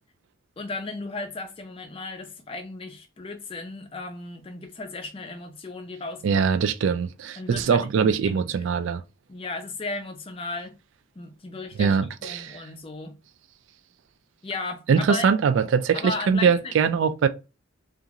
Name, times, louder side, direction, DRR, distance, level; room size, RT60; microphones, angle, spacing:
voice 1, 0.6-6.4 7.4-8.5 9.3-10.7 11.2-12.0 12.2-13.1 14.4-15.3 15.9-16.7, left 3 dB, 25° left, 0.4 m, -35 dB
voice 2, 6.2-9.0 11.8-12.6 14.9-17.3, right 6 dB, 70° right, 0.3 m, -22 dB
2.9 x 2.4 x 2.4 m
head